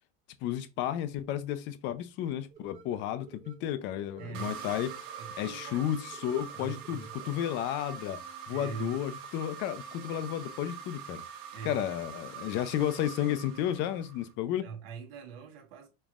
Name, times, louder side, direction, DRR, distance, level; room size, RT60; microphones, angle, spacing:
voice 1, 0.4-4.9 5.4-8.2 8.5-11.2 11.6-14.7, left 11 dB, 40° left, 0.5 m, -32 dB
sound 1, 2.5-7.5, right 6 dB, 25° right, 0.6 m, -55 dB
voice 2, 4.2-4.8 5.2-5.9 6.5-7.1 8.5-9.0 11.5-11.8 14.6-15.9, right 7 dB, 80° right, 1.2 m, -42 dB
sound 2, 4.3-14.3, right 7 dB, 55° right, 1.0 m, -44 dB
5.3 x 3.0 x 2.4 m
cardioid pair, 165°, 29 cm